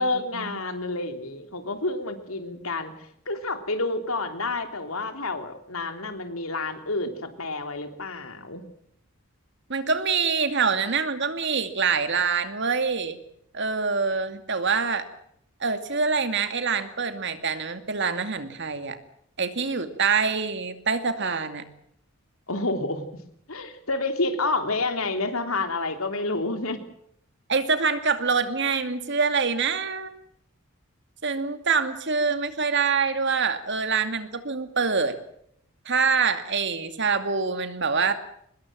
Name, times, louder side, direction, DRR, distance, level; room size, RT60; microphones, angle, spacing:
voice 1, 0.0-2.9 3.3-8.6 22.5-23.1 23.5-26.8, left 2 dB, 80° left, 7 dB, 3.5 m, -29 dB
voice 2, 9.7-13.2 13.5-15.1 15.6-19.0 19.4-21.6 27.5-30.1 31.2-35.2 35.9-38.1, right 5 dB, 55° right, 9 dB, 2.5 m, -25 dB
24.5 x 21.0 x 7.6 m, 0.72 s
head